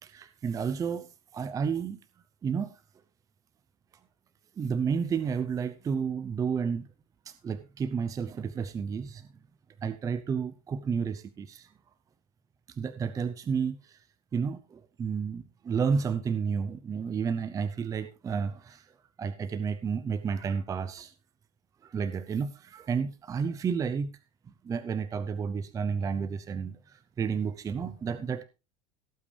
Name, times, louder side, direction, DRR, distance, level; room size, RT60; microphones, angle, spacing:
voice 1, 0.0-2.0 2.4-2.7 4.6-6.9 7.3-9.3 9.8-11.7 12.7-14.0 14.3-18.9 19.2-21.1 21.8-24.1 24.6-28.4, right 6 dB, 20° right, 0.6 m, -31 dB
17.5 x 8.4 x 3.3 m
supercardioid pair, 145°, 18 cm